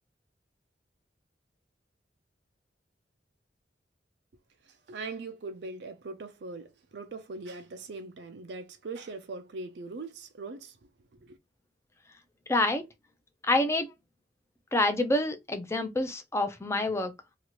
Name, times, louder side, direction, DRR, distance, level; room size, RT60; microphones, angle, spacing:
voice 1, 4.6-10.8 11.2-11.4, right 3 dB, 65° right, 0.5 m, -41 dB
voice 2, 12.5-12.9 13.4-13.9 14.7-17.1, left 2 dB, 15° left, 0.5 m, -27 dB
2.9 x 2.4 x 2.8 m
head